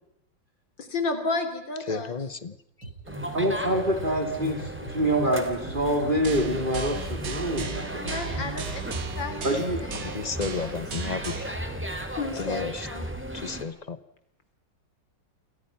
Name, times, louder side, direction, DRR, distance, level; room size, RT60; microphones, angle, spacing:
voice 1, 0.8-2.2 8.0-8.8 9.1-9.5 9.8-10.8 12.1-13.0, left 3 dB, 75° left, 8 dB, 3.6 m, -32 dB
voice 2, 1.9-2.5 10.0-11.4 12.4-12.9 13.3-14.0, left 4 dB, 30° left, 14 dB, 0.8 m, -32 dB
sound 1, 2.8-9.0, right 1 dB, 85° right, 9.0 m, -40 dB
sound 2, 3.1-13.6, equal, 5° right, 2.9 m, -36 dB
voice 3, 3.3-8.1 9.4-9.8, right 1 dB, 25° right, 3 dB, 3.9 m, -26 dB
sound 3, 6.2-11.6, right 5 dB, 50° right, 1.9 m, -37 dB
29.5 x 24.0 x 5.9 m, 0.82 s
omnidirectional pair, 2.0 m